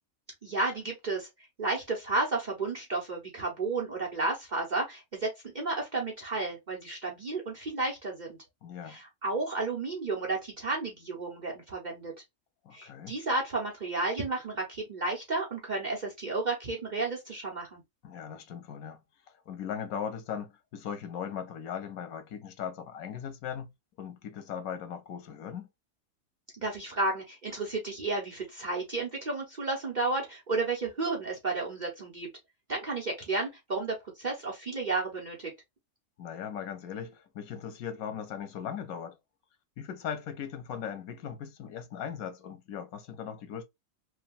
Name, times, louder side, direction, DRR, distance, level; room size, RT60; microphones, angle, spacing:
voice 1, 0.4-1.3 1.6-8.4 8.9-12.1 12.7-17.8 26.6-32.3 32.7-35.5, right 3 dB, 35° right, 0.9 m, -32 dB
voice 2, 8.6-9.0 12.6-13.1 18.0-19.0 19.5-23.7 24.0-25.7 36.2-39.2 39.8-43.6, left 8 dB, 90° left, 1.1 m, -38 dB
3.2 x 2.3 x 2.4 m
omnidirectional pair, 1.5 m